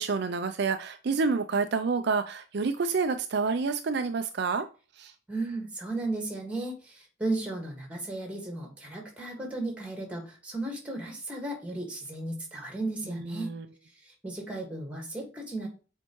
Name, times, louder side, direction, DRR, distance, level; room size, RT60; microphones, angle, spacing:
voice 1, 0.0-4.7 4.9-5.1 13.1-13.7, right 4 dB, 55° right, 8 dB, 0.4 m, -28 dB
voice 2, 5.3-13.5 14.0-15.7, right 2 dB, 5° right, 1 dB, 1.7 m, -35 dB
6.9 x 4.5 x 3.0 m, 0.35 s
head